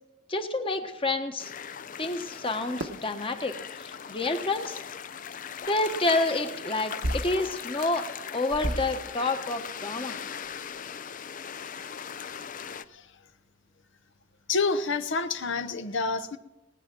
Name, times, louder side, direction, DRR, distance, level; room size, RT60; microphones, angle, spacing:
voice 1, 0.3-1.5 2.0-3.5 3.8-4.8 5.7-8.0 8.3-10.2, left 2 dB, 25° left, 6 dB, 1.3 m, -29 dB
sound 1, 1.4-12.8, left 7 dB, 45° left, 0.5 m, -39 dB
sound 2, 2.8-3.1 4.3-4.4 5.6-5.8 7.0-7.5 7.9-8.0 8.5-9.1 9.7-9.8 10.1-10.2 10.4-10.8, right 1 dB, 70° right, 1.1 m, -32 dB
voice 2, 14.5-16.4, left 4 dB, 65° left, 10 dB, 0.8 m, -28 dB
19.0 x 9.7 x 6.1 m, 1.0 s
head